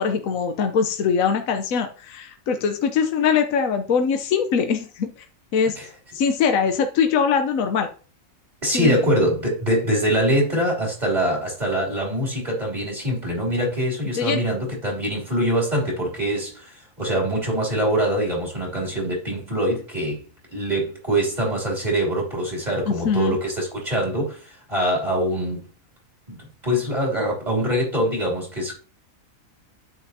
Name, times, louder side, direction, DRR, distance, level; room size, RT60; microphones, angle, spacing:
voice 1, 0.0-5.3 5.5-5.8 6.1-7.9 8.7-9.0 14.1-14.4 22.9-23.4, left 6 dB, 75° left, 1.2 m, -22 dB
voice 2, 8.6-20.2 20.5-25.6 26.3-28.8, equal, 30° right, 3.1 m, -24 dB
9.7 x 7.4 x 2.7 m
omnidirectional pair, 1.4 m